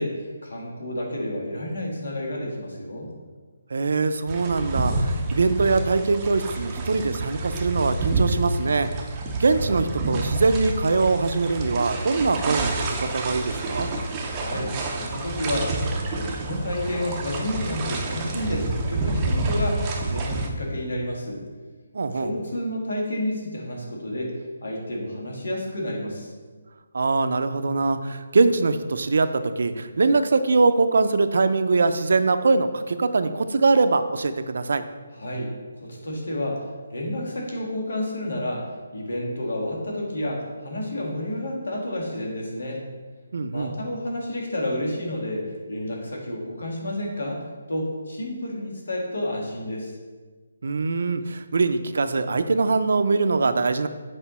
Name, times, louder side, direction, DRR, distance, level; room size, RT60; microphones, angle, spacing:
voice 1, 0.0-3.1 14.3-21.4 22.1-24.3 24.6-26.3 35.1-35.5 35.8-42.8 43.5-49.9, left 1 dB, 80° left, -2 dB, 2.3 m, -30 dB
voice 2, 3.7-8.9 9.4-12.7 13.0-13.9 21.9-22.3 26.9-34.8 43.3-43.7 50.6-53.9, right 3 dB, 60° right, 10 dB, 0.5 m, -22 dB
sound 1, 4.3-20.5, right 2 dB, 15° right, 0.6 m, -28 dB
8.1 x 5.0 x 4.2 m, 1.4 s
hypercardioid pair, 175°, 0 cm